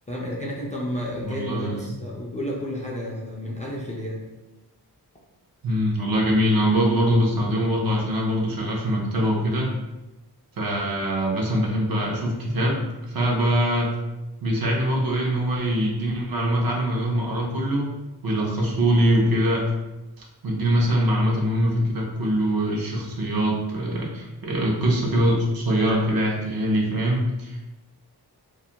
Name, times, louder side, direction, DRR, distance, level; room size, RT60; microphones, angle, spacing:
voice 1, 0.1-4.2, left 1 dB, 20° left, -5 dB, 0.3 m, -31 dB
voice 2, 1.2-1.9 5.6-9.7 10.6-12.8 13.1-14.0 14.4-17.9 18.2-19.7 20.4-27.7, equal, 60° right, -2 dB, 0.6 m, -23 dB
2.3 x 2.1 x 2.7 m, 1.0 s
wide cardioid pair, 130°, 40 cm